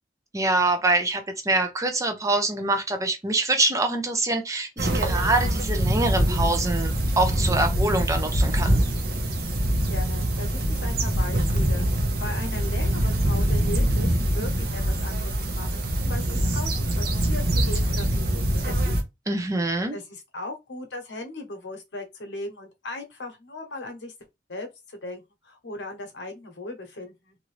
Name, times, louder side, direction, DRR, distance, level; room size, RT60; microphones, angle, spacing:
voice 1, 0.3-8.8 19.3-20.0, right 2 dB, 20° right, 0.6 m, -25 dB
sound 1, 4.8-19.0, right 1 dB, 60° right, 0.8 m, -24 dB
voice 2, 9.9-16.2 16.5-16.7 17.0-18.2 18.5-18.8 19.9-24.1 24.5-27.4, left 2 dB, 85° left, 0.9 m, -38 dB
2.7 x 2.5 x 3.1 m
head